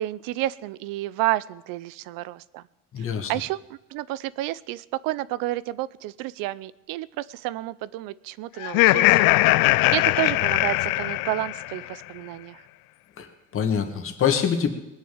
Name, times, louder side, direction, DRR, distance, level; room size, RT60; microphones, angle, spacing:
voice 1, 0.0-2.6 3.0-9.2 9.9-12.6, right 16 dB, 75° right, 19 dB, 0.6 m, -30 dB
voice 2, 2.9-3.3 13.2-14.7, left 8 dB, 40° left, 6 dB, 1.9 m, -25 dB
Laughter, 8.6-11.8, left 19 dB, 80° left, 0.5 m, -20 dB
20.0 x 6.7 x 8.7 m, 0.97 s
cardioid pair, 145°, 34 cm